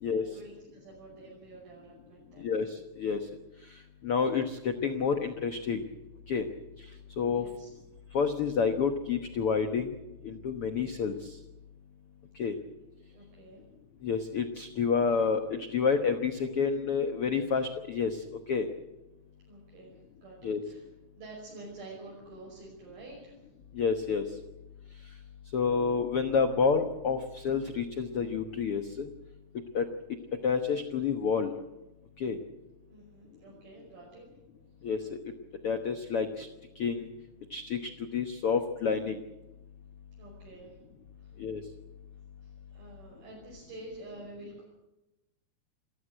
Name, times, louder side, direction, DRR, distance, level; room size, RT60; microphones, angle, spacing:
voice 1, 0.1-2.5 7.2-7.7 13.1-13.6 19.5-20.9 21.2-23.4 32.9-34.2 40.2-40.7 41.2-41.3 42.4-44.6, right 2 dB, 70° right, -4 dB, 7.4 m, -49 dB
voice 2, 2.4-3.2 4.0-5.8 6.3-6.4 7.2-7.5 8.1-9.9 10.2-11.4 12.3-12.5 14.0-18.7 20.4-20.6 23.7-24.2 25.5-29.1 29.7-29.9 30.4-31.5 32.2-32.4 34.8-35.2 35.6-36.5 36.7-37.1 37.5-39.2 41.4-41.6, left 5 dB, 85° left, 7 dB, 1.2 m, -29 dB
27.0 x 14.5 x 7.8 m, 0.98 s
omnidirectional pair, 4.5 m